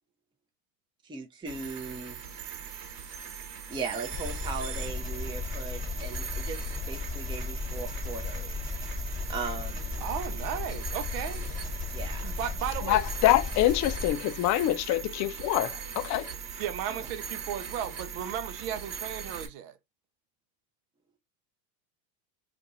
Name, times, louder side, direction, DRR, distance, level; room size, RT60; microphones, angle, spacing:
voice 1, 1.0-2.2 3.7-8.7 9.3-10.1 11.9-12.3, right 4 dB, 10° right, 0.6 m, -38 dB
sound 1, 1.5-19.5, right 7 dB, 50° right, 1.1 m, -40 dB
Engine, 4.1-14.1, left 4 dB, 15° left, 1.1 m, -36 dB
voice 2, 10.0-11.4 12.2-13.1 16.6-19.8, right 9 dB, 70° right, 0.8 m, -35 dB
voice 3, 12.9-16.3, left 14 dB, 40° left, 0.4 m, -25 dB
2.6 x 2.5 x 4.1 m
supercardioid pair, 100°, 49 cm